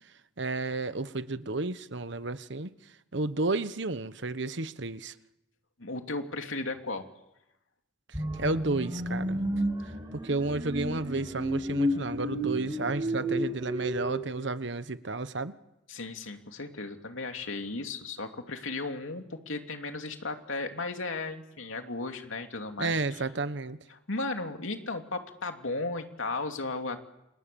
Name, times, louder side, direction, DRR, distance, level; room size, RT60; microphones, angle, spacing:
voice 1, 0.4-2.7 3.1-5.1 8.4-9.4 10.1-15.5 22.8-23.8, right 3 dB, 65° right, 1.2 m, -32 dB
voice 2, 5.8-7.0 15.9-23.2 23.9-27.0, left 3 dB, 85° left, 2.9 m, -35 dB
sound 1, 8.1-14.1, equal, 25° right, 5.5 m, -31 dB
29.0 x 28.0 x 7.0 m
head